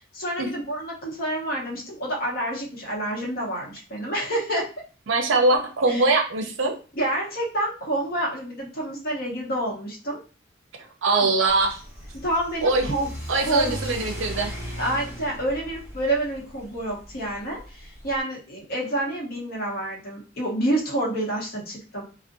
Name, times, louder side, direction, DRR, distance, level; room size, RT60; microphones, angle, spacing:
voice 1, 0.1-4.7 5.9-6.0 6.9-10.2 12.2-13.1 13.4-13.8 14.8-22.0, right 1 dB, 50° left, -3 dB, 0.9 m, -28 dB
voice 2, 5.1-6.7 11.0-11.8 12.6-12.9 13.3-14.5, right 3 dB, 70° right, 4 dB, 0.5 m, -22 dB
Car / Accelerating revving vroom, 11.5-18.2, equal, 10° right, 1.1 m, -38 dB
2.5 x 2.1 x 2.5 m, 0.36 s
head